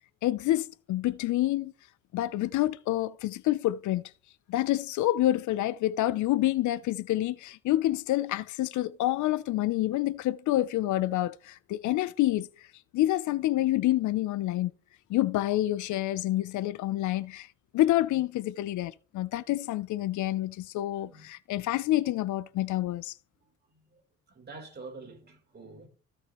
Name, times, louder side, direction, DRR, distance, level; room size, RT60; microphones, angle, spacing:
voice 1, 0.2-1.7 2.1-4.0 4.5-12.5 12.9-14.7 15.1-17.5 17.7-23.1, left 15 dB, 75° left, 0.5 m, -28 dB
voice 2, 23.7-24.0 24.3-25.9, right 3 dB, 35° right, 3.8 m, -46 dB
15.0 x 6.0 x 3.0 m
cardioid pair, 90°, 30 cm